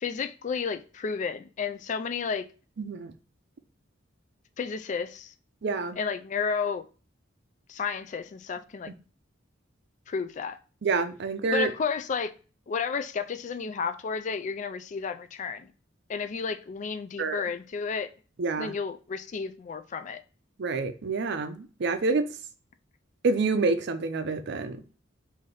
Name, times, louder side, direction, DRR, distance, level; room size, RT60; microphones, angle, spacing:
voice 1, 0.0-2.5 4.6-5.3 6.0-6.8 7.7-8.9 10.1-10.6 11.5-12.3 12.7-15.7 16.1-18.1 18.6-20.2, left 5 dB, 40° left, 0.3 m, -32 dB
voice 2, 2.8-3.1 5.6-6.0 10.8-11.7 17.2-17.4 18.4-18.7 20.6-22.3 23.2-24.9, right 4 dB, 60° right, 0.5 m, -27 dB
3.3 x 2.6 x 3.8 m
head